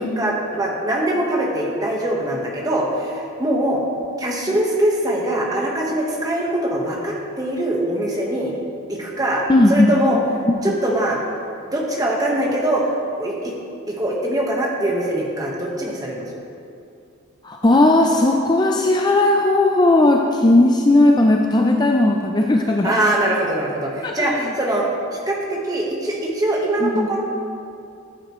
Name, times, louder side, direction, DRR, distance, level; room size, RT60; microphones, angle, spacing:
voice 1, 0.0-3.8 4.2-8.5 8.9-10.2 10.6-11.2 11.7-12.9 13.2-13.5 13.9-16.4 22.8-24.9 25.3-27.2, right 1 dB, 15° right, -2 dB, 1.3 m, -22 dB
voice 2, 9.5-9.9 10.6-10.7 17.4-22.9 24.0-24.4 26.8-27.1, left 2 dB, 20° left, 1 dB, 0.4 m, -16 dB
13.5 x 8.8 x 3.1 m, 2.5 s
head